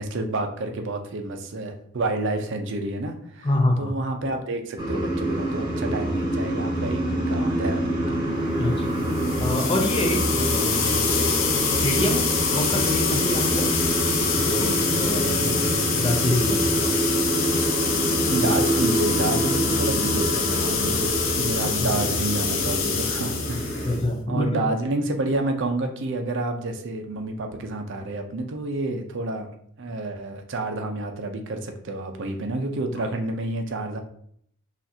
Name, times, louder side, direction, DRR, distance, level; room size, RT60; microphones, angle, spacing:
voice 1, 0.0-3.5 3.8-8.3 15.2-15.4 18.3-23.9 24.3-29.5 29.8-34.0, right 2 dB, 60° right, 5 dB, 0.6 m, -29 dB
voice 2, 3.4-3.9 8.6-9.1 9.4-11.4 11.6-13.7 14.3-17.0 21.6-21.7 23.8-24.7, left 1 dB, 25° left, 4 dB, 0.5 m, -27 dB
sound 1, 4.8-24.0, right 1 dB, 20° right, 0.9 m, -26 dB
sound 2, 9.0-24.0, left 6 dB, 70° left, 0.7 m, -26 dB
5.7 x 2.5 x 2.7 m, 0.66 s
head